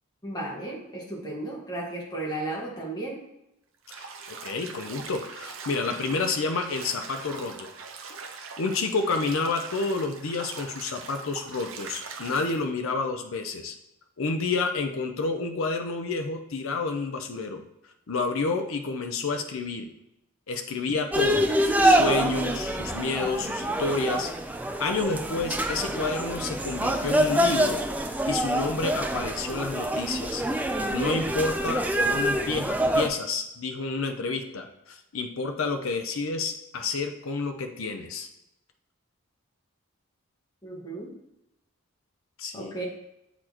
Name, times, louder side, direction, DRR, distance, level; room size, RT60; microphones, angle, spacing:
voice 1, 0.2-3.2 40.6-41.1 42.5-42.8, right 2 dB, 20° left, -4 dB, 1.5 m, -34 dB
Bathtub (filling or washing), 3.8-12.6, right 4 dB, 65° right, 0.7 m, -42 dB
voice 2, 3.9-7.7 8.6-13.7 14.2-17.6 18.1-19.9 20.5-24.3 24.8-27.8 28.2-30.4 30.9-38.3 42.4-42.7, left 3 dB, 70° left, 5 dB, 0.6 m, -29 dB
sound 1, 21.1-33.1, right 1 dB, 10° right, 0.3 m, -26 dB
7.8 x 4.2 x 2.9 m, 0.86 s
head